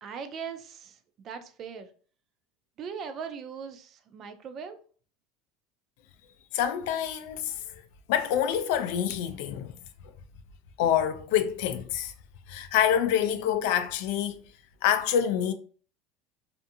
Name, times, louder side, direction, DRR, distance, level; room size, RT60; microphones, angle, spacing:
voice 1, 0.0-1.9 2.8-4.8, right 6 dB, 35° right, 0.4 m, -40 dB
voice 2, 6.5-7.8 8.1-9.7 10.8-12.1 12.5-14.5 14.8-15.5, left 9 dB, 70° left, 0.3 m, -26 dB
2.5 x 2.5 x 2.6 m
cardioid pair, 150°, 0 cm